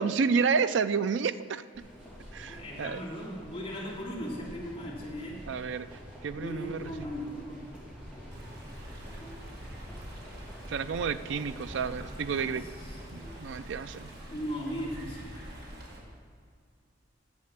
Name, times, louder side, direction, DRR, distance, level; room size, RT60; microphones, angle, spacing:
voice 1, 0.0-1.6 2.3-3.0 5.5-5.9 6.2-6.8 10.7-12.6 13.1-14.1, right 5 dB, 70° right, 13 dB, 0.4 m, -30 dB
sound 1, 1.7-14.9, equal, 5° right, 2.1 m, -47 dB
voice 2, 2.5-5.7 6.4-7.7 8.0-8.2 12.6-13.0 14.3-15.5, equal, 30° left, -6 dB, 2.9 m, -38 dB
Stream, 8.3-16.0, right 1 dB, 55° right, 2.0 m, -46 dB
9.8 x 7.6 x 7.3 m, 2.1 s
head